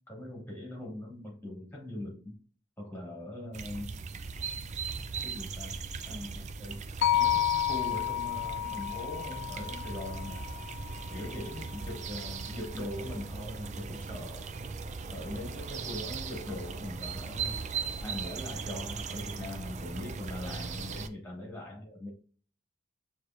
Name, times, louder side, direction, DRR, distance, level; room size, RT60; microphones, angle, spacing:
voice 1, 0.1-2.4 2.8-3.9 5.2-6.8 7.1-10.5 11.1-14.5 15.1-17.6 18.0-22.1, left 1 dB, 10° left, -2 dB, 1.9 m, -41 dB
sound 1, 3.5-21.1, right 5 dB, 35° right, 0.4 m, -38 dB
sound 2, 7.0-11.2, left 11 dB, 65° left, 0.3 m, -31 dB
6.6 x 3.1 x 2.5 m, 0.41 s
head